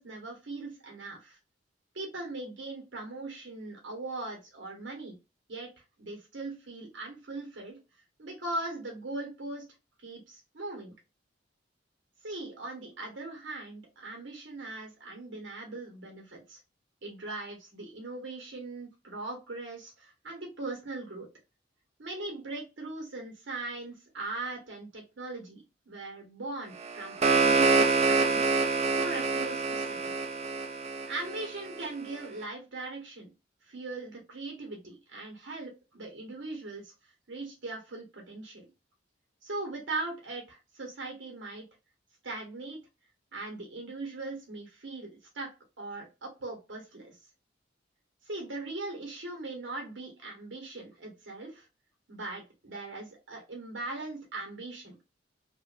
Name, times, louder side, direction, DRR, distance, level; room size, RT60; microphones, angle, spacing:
voice 1, 0.0-1.4 1.9-5.1 5.5-5.7 6.0-7.8 8.2-9.7 10.0-10.9 12.2-16.6 17.0-21.3 22.0-28.5 28.9-30.1 31.1-33.3 33.7-36.9 37.3-38.7 39.4-41.7 42.2-42.8 43.3-47.2 48.2-51.7 52.1-55.0, right 2 dB, 80° right, 1 dB, 1.1 m, -40 dB
sound 1, 26.8-31.9, right 4 dB, 35° right, 0.5 m, -26 dB
3.0 x 2.4 x 2.4 m, 0.26 s
head